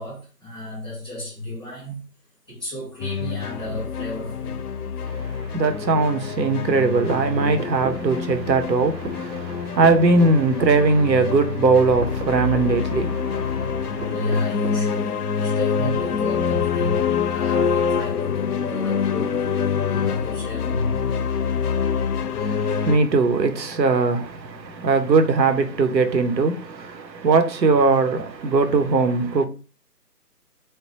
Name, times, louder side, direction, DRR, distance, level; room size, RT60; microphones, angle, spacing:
voice 1, 0.0-2.0 2.5-4.6 14.0-21.1, left 2 dB, 10° right, 0.8 m, -32 dB
sound 1, 3.0-23.0, left 6 dB, 65° left, 0.5 m, -26 dB
voice 2, 5.1-14.3 22.4-29.5, right 3 dB, 90° right, 0.8 m, -20 dB
sound 2, 7.1-8.0 9.0-9.2 9.8-10.0 10.6-10.8 12.0-12.7 14.0-14.8, right 3 dB, 50° right, 0.7 m, -32 dB
3.3 x 2.1 x 4.0 m
figure-of-eight pair, 160°, 50 cm